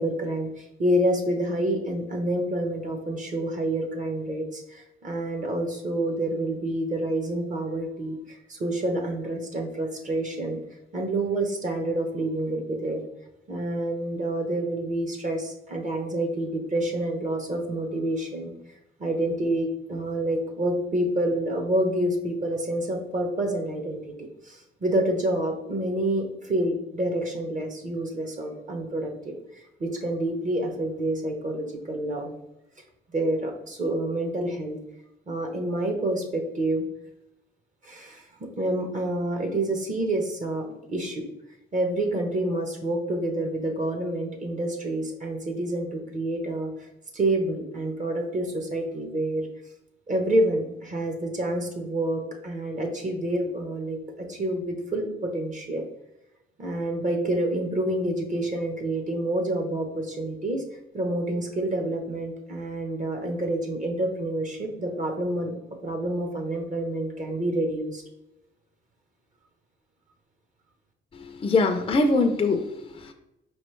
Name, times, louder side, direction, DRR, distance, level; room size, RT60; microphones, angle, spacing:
voice 1, 0.0-10.6 10.9-13.0 13.5-18.5 19.0-32.3 33.1-34.8 35.3-36.8 37.8-41.2 41.7-46.9 47.1-49.5 50.1-55.9 56.6-60.6 60.9-65.5 65.8-68.0, right 1 dB, 40° right, 3 dB, 0.9 m, -28 dB
voice 2, 71.2-73.1, left 3 dB, 25° left, 5 dB, 0.4 m, -23 dB
4.9 x 3.1 x 3.1 m, 0.88 s
cardioid pair, 90°, 20 cm